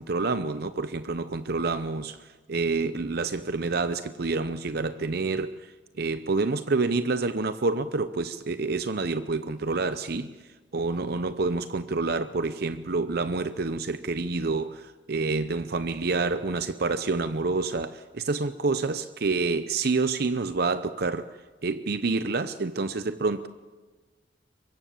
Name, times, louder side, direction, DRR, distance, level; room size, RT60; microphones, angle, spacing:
voice 1, 0.0-2.2 2.5-5.5 6.0-10.3 10.7-21.3 21.6-23.5, right 3 dB, 55° right, 12 dB, 0.7 m, -28 dB
24.0 x 23.0 x 7.3 m, 1.3 s
head